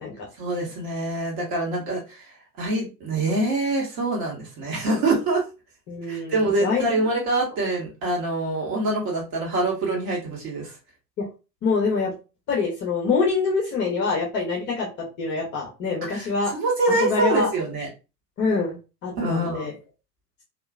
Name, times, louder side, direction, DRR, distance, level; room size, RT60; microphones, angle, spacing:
voice 1, 0.4-2.2 2.6-5.4 6.1-10.7 16.1-17.9 19.2-19.7, right 2 dB, 40° right, -2 dB, 1.4 m, -25 dB
voice 2, 5.9-6.9 11.6-12.1 12.5-16.5 17.0-17.5 18.4-19.7, left 4 dB, 25° left, -1 dB, 0.8 m, -25 dB
2.9 x 2.5 x 2.3 m, 0.30 s
figure-of-eight pair, 95°, 48 cm